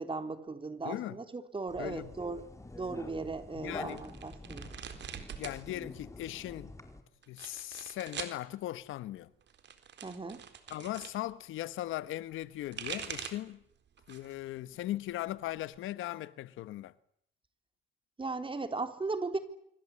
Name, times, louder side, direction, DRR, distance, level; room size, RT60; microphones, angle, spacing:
voice 1, 0.0-2.4 2.7-4.7 10.0-10.5 18.2-19.4, right 3 dB, 25° right, 3.8 m, -37 dB
voice 2, 0.8-1.2 1.8-2.1 3.5-4.0 5.4-6.7 7.3-9.3 10.7-13.6 14.1-16.9, left 14 dB, 85° left, 1.1 m, -38 dB
sound 1, 1.7-7.0, left 2 dB, 15° left, 4.2 m, -47 dB
sound 2, 3.8-5.6 5.9-6.6 7.2-8.4 9.4-11.2 12.4-13.5 14.0-14.4 14.8-15.8, right 8 dB, 60° right, 3.9 m, -44 dB
26.0 x 25.5 x 8.7 m
cardioid pair, 90°, 20 cm